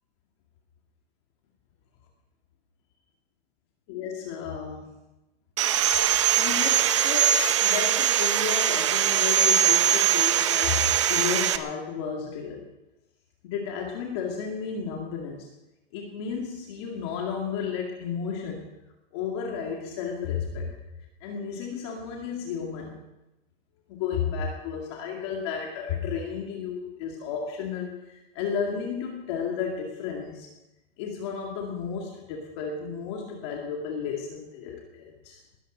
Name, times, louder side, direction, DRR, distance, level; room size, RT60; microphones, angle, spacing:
voice 1, 3.9-5.0 6.4-12.7 13.4-15.5 15.9-18.7 19.1-20.8 21.2-23.0 23.9-30.5 31.0-35.4, left 6 dB, 30° left, 0 dB, 2.1 m, -33 dB
Sawing, 5.6-11.6, right 10 dB, 30° right, 0.7 m, -22 dB
20.5 x 13.0 x 5.1 m, 0.96 s
hypercardioid pair, 175°, 29 cm